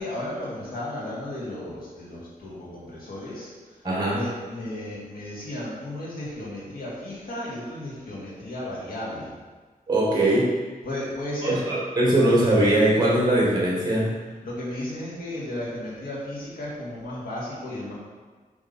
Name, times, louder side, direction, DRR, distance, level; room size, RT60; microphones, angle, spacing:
voice 1, 0.0-3.5 4.1-9.3 10.8-11.6 14.4-17.9, left 1 dB, 90° left, -7 dB, 1.9 m, -34 dB
voice 2, 3.8-4.2 9.9-10.5 11.4-14.1, right 1 dB, 30° right, -5 dB, 1.7 m, -21 dB
5.5 x 3.5 x 5.3 m, 1.4 s
wide cardioid pair, 105°, 15 cm